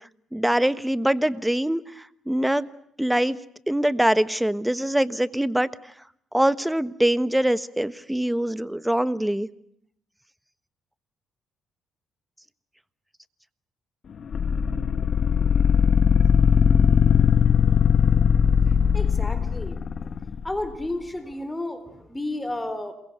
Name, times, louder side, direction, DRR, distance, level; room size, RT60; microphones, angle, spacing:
voice 1, 0.3-2.7 3.0-3.4 3.7-5.7 6.3-9.5, right 1 dB, 5° right, 15 dB, 1.3 m, -23 dB
sound 1, 14.3-20.5, left 7 dB, 55° left, 1.7 m, -19 dB
voice 2, 18.8-19.8 20.0-22.9, left 1 dB, 15° left, 12 dB, 4.0 m, -32 dB
28.0 x 22.5 x 8.0 m, 0.70 s
cardioid pair, 85°, 0 cm